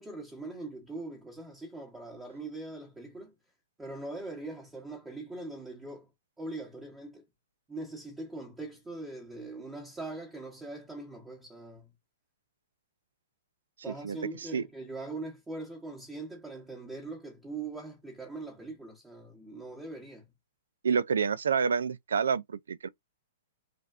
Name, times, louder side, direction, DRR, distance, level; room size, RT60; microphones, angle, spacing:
voice 1, 0.0-3.3 3.8-6.1 6.4-7.2 7.7-11.9 13.8-20.3, right 2 dB, 10° right, 0.9 m, -41 dB
voice 2, 14.0-14.6 20.8-22.9, right 6 dB, 80° right, 0.3 m, -28 dB
3.3 x 2.2 x 2.4 m
hypercardioid pair, 130°, 0 cm